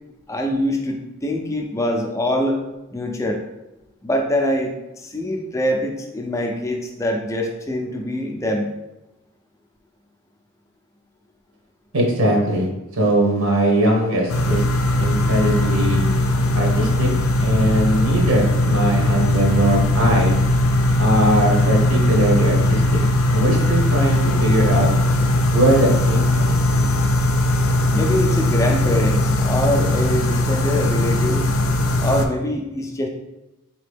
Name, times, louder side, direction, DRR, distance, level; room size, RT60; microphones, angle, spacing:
voice 1, 0.3-2.6 2.9-3.4 4.0-8.7 27.9-31.5 32.0-33.1, left 1 dB, 15° left, 1 dB, 0.4 m, -24 dB
voice 2, 11.9-12.7 12.9-14.6 15.0-16.1 16.5-17.1 17.4-20.4 21.0-23.0 23.3-24.9 25.5-26.5 27.6-27.7, right 1 dB, 75° right, -1 dB, 1.1 m, -20 dB
sound 1, 14.3-32.3, left 1 dB, 70° left, 0.4 m, -19 dB
4.2 x 2.9 x 3.4 m, 0.97 s
head